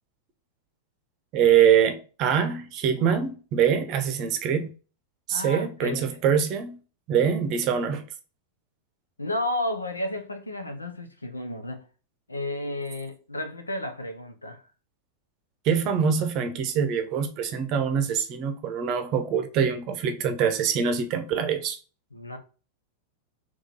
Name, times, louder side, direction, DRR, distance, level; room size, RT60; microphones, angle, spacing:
voice 1, 1.3-4.7 5.3-6.8 7.1-8.0 15.6-21.8, right 7 dB, 40° right, 0.7 m, -24 dB
voice 2, 5.3-6.2 9.2-11.8 12.3-14.6 22.1-22.4, left 1 dB, 80° left, 0.7 m, -32 dB
3.7 x 3.1 x 4.0 m
figure-of-eight pair, 90°, 0 cm